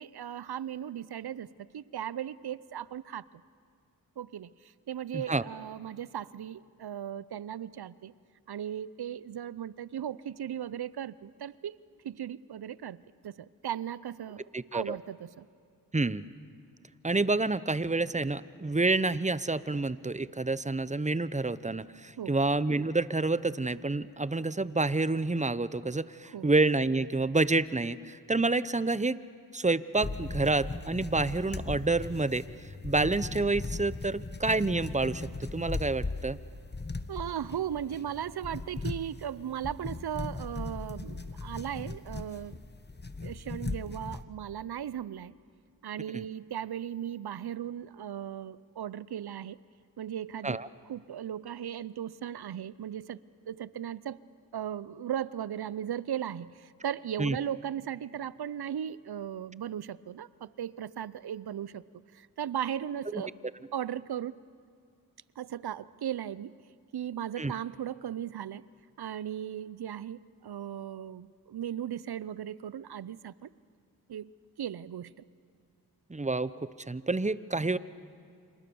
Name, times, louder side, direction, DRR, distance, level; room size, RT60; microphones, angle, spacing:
voice 1, 0.0-3.3 4.2-8.1 8.5-11.8 12.0-15.5 22.2-22.3 26.3-26.5 37.1-42.6 43.2-45.4 45.8-49.6 50.0-50.6 50.9-53.2 53.5-54.2 54.5-61.9 62.1-63.3 63.7-64.4 65.4-66.6 66.9-68.7 69.0-73.5 74.1-74.3 74.6-75.2, right 10 dB, 75° right, 19 dB, 0.7 m, -37 dB
voice 2, 5.1-5.4 14.5-15.0 15.9-16.2 17.0-29.2 29.5-32.4 32.8-36.4 46.1-46.2 50.4-50.7 57.2-57.4 63.1-63.2 67.4-67.5 76.1-76.5 76.9-77.8, right 3 dB, 20° right, 16 dB, 0.8 m, -28 dB
sound 1, 30.0-44.2, left 3 dB, 25° left, 1.2 m, -38 dB
29.0 x 26.5 x 7.1 m, 2.2 s
cardioid pair, 40°, 38 cm